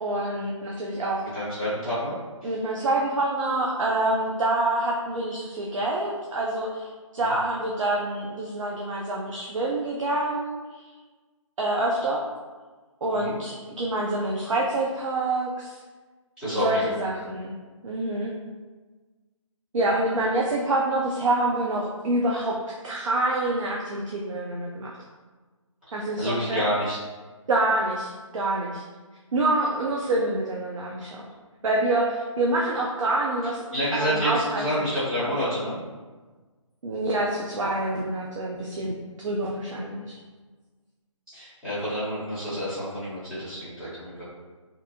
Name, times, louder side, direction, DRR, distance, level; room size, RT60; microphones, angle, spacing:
voice 1, 0.0-1.2 2.4-6.9 7.1-10.8 11.6-12.2 13.0-15.8 16.5-17.5 17.8-18.3 19.7-25.0 25.9-26.6 27.5-28.8 29.3-31.3 31.6-33.7 33.9-34.8 35.2-35.4 36.8-40.2, right 2 dB, 70° right, -2 dB, 0.4 m, -26 dB
voice 2, 1.3-2.1 2.4-2.5 7.2-7.3 13.1-13.4 16.4-16.9 25.9-27.0 33.7-35.8 41.3-44.3, equal, 5° right, -16 dB, 0.8 m, -28 dB
2.6 x 2.1 x 2.6 m, 1.3 s
figure-of-eight pair, 160°, 17 cm